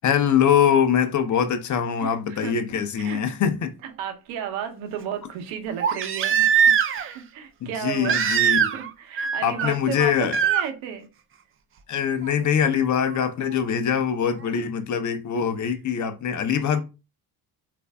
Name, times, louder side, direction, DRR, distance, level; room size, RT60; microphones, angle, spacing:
voice 1, 0.0-3.7 7.6-8.7 9.4-10.4 11.9-16.8, left 8 dB, 40° left, 0.6 m, -23 dB
voice 2, 2.0-2.6 2.9-3.2 3.8-11.1, right 8 dB, 80° right, 0.8 m, -34 dB
Crying sobbing, 3.1-3.2 5.8-7.1 8.0-8.9 9.2-9.7 10.3-10.6 12.2-12.3, right 8 dB, 30° right, 0.4 m, -21 dB
3.2 x 2.6 x 2.2 m
supercardioid pair, 65°, 47 cm